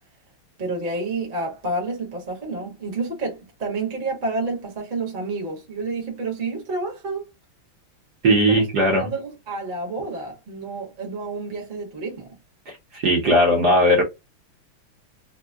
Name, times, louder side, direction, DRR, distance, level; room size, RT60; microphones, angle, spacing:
voice 1, 0.6-7.3 8.5-8.7 9.0-12.4, right 3 dB, 35° right, 0.9 m, -29 dB
voice 2, 8.2-9.1 12.9-14.0, equal, 60° right, 1.2 m, -18 dB
3.6 x 2.0 x 2.2 m
omnidirectional pair, 2.3 m